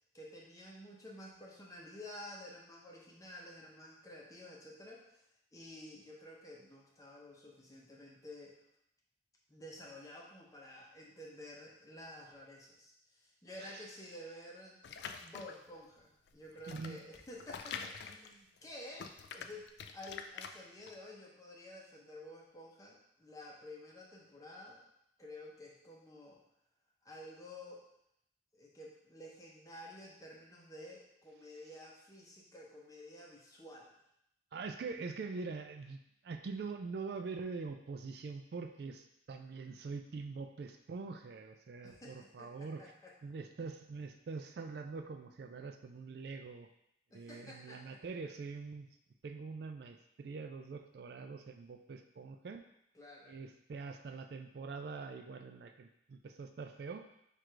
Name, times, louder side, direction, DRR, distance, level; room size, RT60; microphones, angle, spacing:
voice 1, 0.1-5.2 5.5-8.5 9.5-14.8 15.1-19.7 19.9-24.8 25.2-26.4 27.0-27.8 28.5-33.9 41.8-43.1 47.1-48.0 52.9-53.4, left 1 dB, 20° left, -3 dB, 0.7 m, -51 dB
sound 1, 14.8-15.7 16.3-18.7 18.9-20.9, left 6 dB, 60° left, 0.3 m, -45 dB
voice 2, 16.7-17.0 34.5-36.0 36.2-42.9 43.2-46.7 47.1-48.9 49.2-52.6 53.3-57.0, right 4 dB, 55° right, 6 dB, 0.3 m, -44 dB
4.6 x 2.5 x 4.6 m, 0.77 s
head